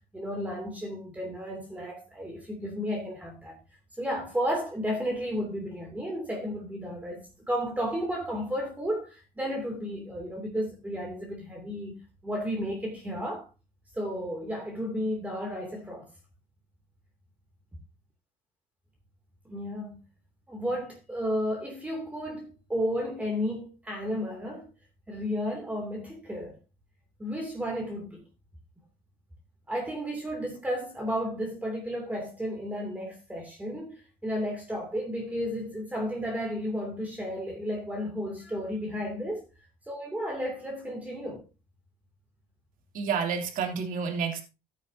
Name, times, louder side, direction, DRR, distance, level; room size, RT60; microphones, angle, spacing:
voice 1, 0.1-3.6 4.0-12.0 12.2-13.5 13.9-16.1 19.4-20.0 20.5-24.7 25.1-26.6 27.2-28.2 29.7-39.4 39.9-41.4, equal, 10° right, 2.7 m, -33 dB
voice 2, 42.9-44.4, right 6 dB, 60° right, 2.9 m, -29 dB
13.5 x 9.2 x 2.8 m
cardioid pair, 130°, 16 cm